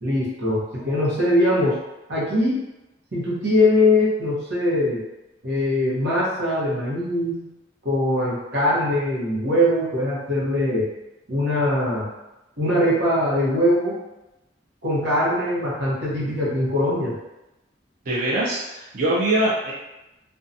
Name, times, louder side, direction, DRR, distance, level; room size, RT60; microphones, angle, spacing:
voice 1, 0.0-1.7 2.1-2.6 3.1-5.0 5.4-7.4 7.8-10.9 11.3-12.1 12.6-14.0 14.8-17.1, left 1 dB, 65° right, -7 dB, 0.9 m, -21 dB
voice 2, 18.1-19.7, right 1 dB, 50° right, -7 dB, 0.5 m, -23 dB
2.7 x 2.2 x 2.5 m, 0.97 s
head